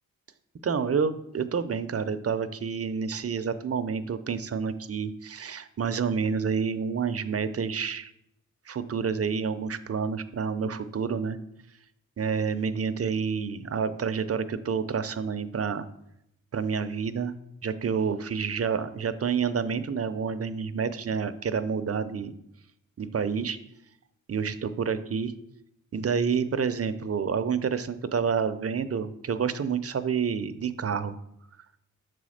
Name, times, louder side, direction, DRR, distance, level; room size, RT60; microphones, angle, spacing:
voice 1, 0.6-8.1 8.7-11.4 12.2-15.9 16.5-17.4 17.6-22.3 23.0-23.6 24.3-25.3 25.9-31.2, right 6 dB, 45° right, 11 dB, 0.6 m, -29 dB
6.5 x 4.2 x 6.4 m, 0.79 s
wide cardioid pair, 80°, 33 cm